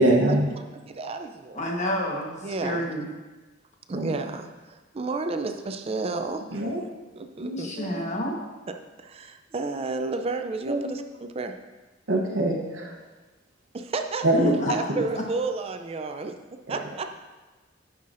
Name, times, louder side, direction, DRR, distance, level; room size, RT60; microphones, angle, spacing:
voice 1, 0.0-0.5 3.9-4.1 6.5-6.8 7.4-8.0 10.7-10.9 12.1-12.9 14.2-14.5 16.7-16.8, right 1 dB, 90° right, -1 dB, 0.8 m, -24 dB
voice 2, 0.7-1.6 2.4-2.9 3.9-6.7 7.2-7.7 8.7-11.6 13.7-14.3 14.7-16.4 16.7-17.2, right 3 dB, 30° right, 6 dB, 0.4 m, -32 dB
voice 3, 1.5-3.1 7.6-8.4 14.3-15.0, equal, 40° left, -1 dB, 1.2 m, -29 dB
11.0 x 5.7 x 2.5 m, 1.2 s
head